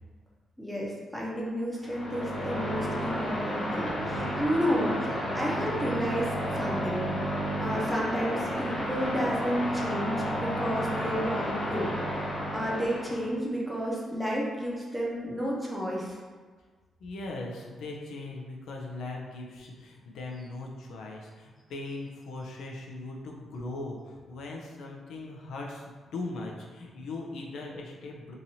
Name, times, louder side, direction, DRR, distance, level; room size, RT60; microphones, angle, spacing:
voice 1, 0.6-12.2 12.5-16.2, equal, ahead, -4 dB, 0.7 m, -31 dB
sound 1, 1.8-13.3, equal, 50° left, 0.8 m, -32 dB
voice 2, 17.0-25.8 26.1-28.3, left 2 dB, 80° left, -1 dB, 0.4 m, -39 dB
2.9 x 2.6 x 2.7 m, 1.4 s
cardioid pair, 95°, 0 cm